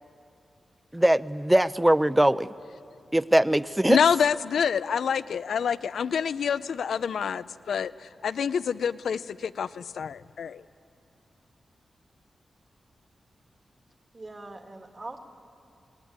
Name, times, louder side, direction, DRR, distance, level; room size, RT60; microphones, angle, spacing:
voice 1, 0.9-2.5 3.1-4.0, right 1 dB, 10° right, 15 dB, 0.6 m, -21 dB
voice 2, 3.9-10.6, left 7 dB, 85° left, 15 dB, 0.5 m, -27 dB
voice 3, 14.1-15.2, right 2 dB, 35° right, 4 dB, 2.0 m, -41 dB
26.5 x 19.0 x 9.5 m, 2.6 s
cardioid pair, 80°, 0 cm